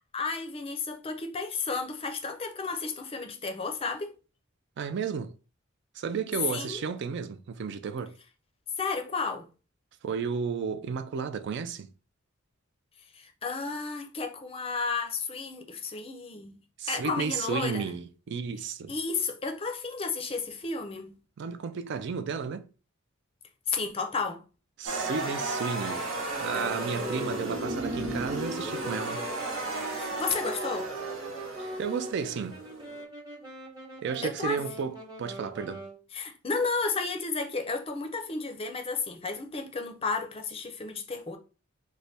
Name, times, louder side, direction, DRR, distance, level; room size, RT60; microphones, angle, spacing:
voice 1, 0.1-4.2 6.5-6.8 8.8-9.5 13.1-16.6 16.9-17.9 18.9-21.1 23.7-24.4 30.0-30.9 34.2-34.6 36.1-41.4, left 4 dB, 30° left, 0.5 m, -32 dB
voice 2, 4.8-5.3 5.9-8.1 10.0-11.9 16.8-18.9 21.4-22.7 24.8-26.1 26.4-29.2 31.6-32.6 34.0-35.8, right 6 dB, 60° right, 0.3 m, -33 dB
sound 1, 24.9-33.0, right 2 dB, 80° right, 1.0 m, -34 dB
Wind instrument woodwind instrument, 26.5-36.0, right 1 dB, 20° right, 0.9 m, -42 dB
3.2 x 2.1 x 4.0 m
head